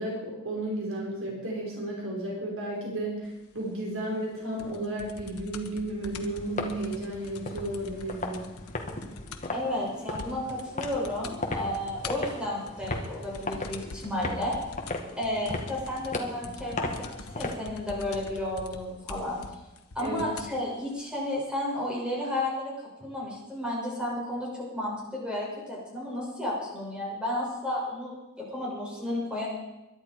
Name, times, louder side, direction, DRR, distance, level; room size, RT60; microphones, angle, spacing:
voice 1, 0.0-3.3 3.5-8.4 20.0-20.3, right 1 dB, 65° right, -2 dB, 4.8 m, -33 dB
sound 1, 4.6-9.6 9.9-10.0 10.2-10.6 10.9-11.4 11.7-20.6 21.4-21.5, left 3 dB, 85° left, 1.4 m, -44 dB
sound 2, 6.2-17.6, left 2 dB, 35° left, 1.9 m, -37 dB
voice 2, 9.5-14.6 15.2-16.9 17.3-19.4 20.0-29.5, left 1 dB, 5° right, -5 dB, 7.1 m, -32 dB
22.5 x 11.5 x 4.9 m, 1.0 s
head